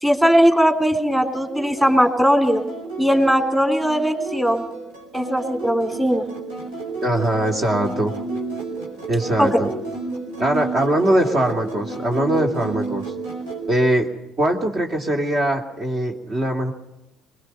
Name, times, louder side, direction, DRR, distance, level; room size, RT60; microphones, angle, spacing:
voice 1, 0.0-2.6 3.0-4.6 5.1-6.2 9.4-9.5, equal, 10° right, 6 dB, 3.4 m, -18 dB
sound 1, 1.1-13.6, right 3 dB, 85° right, 5.4 m, -32 dB
voice 2, 7.0-8.1 9.1-9.7 10.4-13.0 13.7-14.1 14.4-16.7, right 1 dB, 45° right, 2 dB, 2.6 m, -21 dB
22.5 x 21.0 x 5.6 m, 0.94 s
hypercardioid pair, 60°, 0 cm